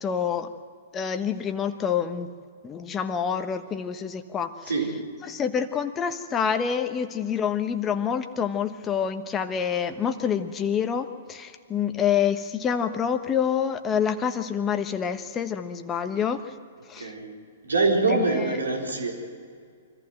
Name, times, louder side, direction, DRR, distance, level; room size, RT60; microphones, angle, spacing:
voice 1, 0.0-0.5 0.9-2.3 2.6-4.5 5.2-16.4 16.9-17.1, left 7 dB, 20° left, 8 dB, 1.3 m, -27 dB
voice 2, 4.6-5.1 16.2-16.3 17.0-19.1, right 3 dB, 80° right, 0 dB, 4.1 m, -25 dB
24.0 x 15.0 x 7.8 m, 2.2 s
figure-of-eight pair, 115°, 0 cm